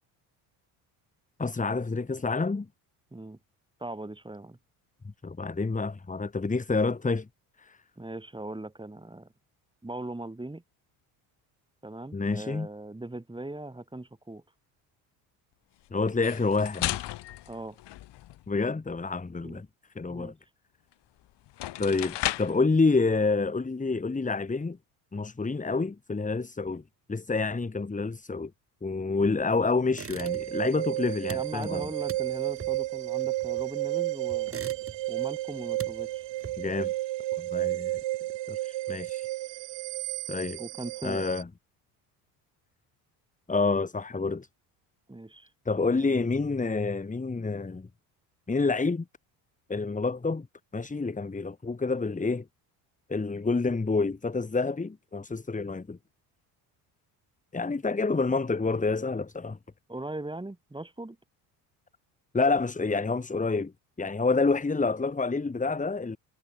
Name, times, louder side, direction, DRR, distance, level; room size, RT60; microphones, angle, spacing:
voice 1, 1.4-2.7 5.2-7.3 7.6-7.8 12.1-12.7 15.9-17.1 18.5-19.7 20.0-20.3 21.8-24.8 25.1-26.8 27.1-28.5 28.8-31.9 36.6-36.9 37.3-38.0 38.5-39.3 40.3-40.6 41.0-41.5 43.5-44.5 45.7-47.9 48.5-49.1 49.7-50.5 50.7-52.4 53.1-56.0 57.5-59.6 62.3-63.7 64.0-66.2, left 3 dB, 15° left, 2.4 m, -28 dB
voice 2, 3.8-4.6 8.0-9.3 9.8-10.6 11.8-14.4 17.5-17.8 19.4-19.6 20.1-20.3 31.3-34.6 35.1-36.3 40.6-41.2 45.1-45.5 45.8-46.2 59.9-61.2, right 2 dB, 10° right, 5.4 m, -39 dB
sound 1, 16.1-18.5 20.9-21.0 21.5-22.7, left 14 dB, 65° left, 4.2 m, -34 dB
sound 2, 29.9-30.7 30.9-33.9 34.3-35.2 35.5-36.9, right 5 dB, 30° right, 5.5 m, -43 dB
sound 3, 30.2-41.4, right 17 dB, 70° right, 4.8 m, -32 dB
supercardioid pair, 75°, 45 cm